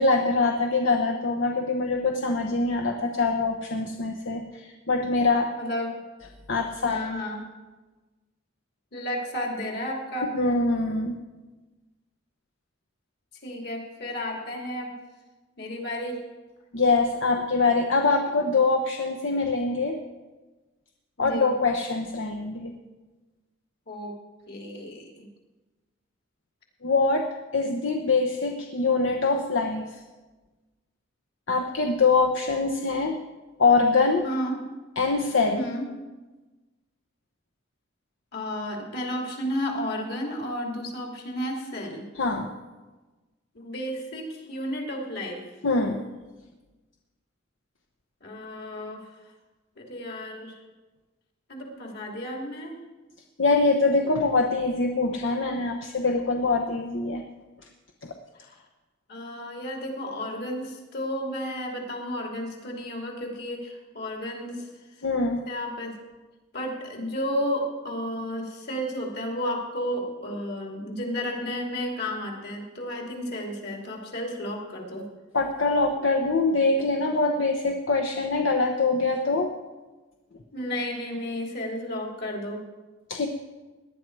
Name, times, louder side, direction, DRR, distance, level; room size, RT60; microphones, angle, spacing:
voice 1, 0.0-5.5 6.5-7.0 10.3-11.2 16.7-20.0 21.2-22.7 26.8-27.3 27.5-29.9 31.5-33.2 33.6-34.2 35.0-35.7 42.2-42.5 45.6-46.0 53.4-57.2 58.0-58.1 65.0-65.4 75.3-79.5 83.1-83.3, left 3 dB, 80° left, 3 dB, 0.9 m, -24 dB
voice 2, 5.5-6.0 6.8-7.4 8.9-10.3 13.4-15.0 15.6-16.2 21.2-21.5 23.9-24.1 24.5-25.3 34.2-34.6 35.5-35.9 38.3-42.0 43.5-45.4 48.2-49.0 49.8-50.6 51.5-52.8 58.4-58.6 59.1-64.7 65.4-66.0 66.5-75.1 80.5-82.6, equal, 60° left, 0 dB, 3.0 m, -32 dB
18.5 x 11.0 x 4.7 m, 1.2 s
head